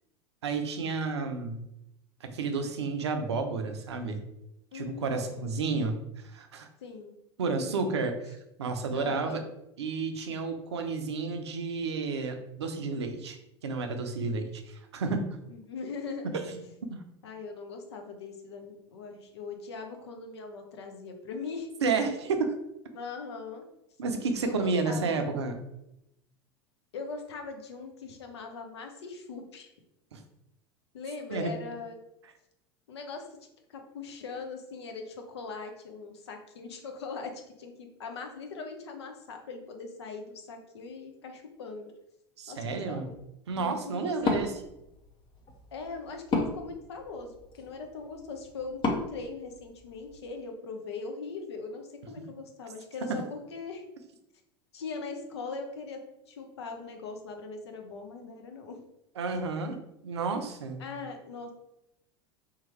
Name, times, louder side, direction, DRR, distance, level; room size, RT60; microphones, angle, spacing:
voice 1, 0.4-1.6 2.2-4.2 4.7-6.7 7.4-9.4 9.8-13.4 13.6-15.4 16.9-17.0 21.8-22.6 24.0-25.6 30.1-30.2 31.3-31.5 42.4-43.0 43.5-44.5 59.2-59.8 60.0-60.8, right 4 dB, 75° right, 6 dB, 0.5 m, -31 dB
voice 2, 4.7-6.0 6.8-7.2 7.5-7.9 8.9-9.5 15.5-16.4 17.2-21.7 22.9-23.6 24.4-25.4 26.9-29.7 30.9-32.0 32.9-33.3 33.7-41.9 42.5-43.2 43.5-44.5 45.7-53.8 54.7-56.0 56.3-58.8 60.8-61.5, left 4 dB, 75° left, 4 dB, 0.7 m, -40 dB
Wood, 44.2-50.2, left 2 dB, 35° left, 0.7 m, -35 dB
3.7 x 2.8 x 3.0 m, 0.85 s
figure-of-eight pair, 80°, 14 cm